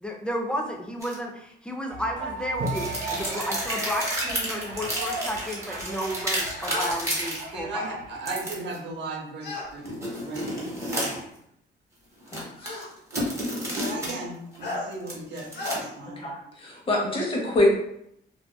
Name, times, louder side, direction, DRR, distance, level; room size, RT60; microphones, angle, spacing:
voice 1, 0.0-8.0, equal, 5° left, 1 dB, 0.4 m, -32 dB
sound 1, 1.0-1.2 2.7-7.4 8.3-8.8 9.8-11.4 12.2-14.1 14.5-16.0, equal, 15° right, 1.0 m, -31 dB
sound 2, 1.9-8.5, right 2 dB, 90° right, 1.0 m, -35 dB
sound 3, 6.6-7.0 9.4-9.7 11.0-11.1 12.6-12.9 14.6-14.9 15.5-15.8, left 2 dB, 55° left, 0.9 m, -32 dB
voice 2, 7.5-10.6 10.8-11.2 13.1-13.2 13.5-16.2, right 2 dB, 60° right, 0 dB, 0.7 m, -36 dB
voice 3, 12.3-12.8 16.6-17.8, left 1 dB, 25° left, -2 dB, 0.9 m, -24 dB
2.6 x 2.3 x 2.2 m, 0.75 s
cardioid pair, 90°, 20 cm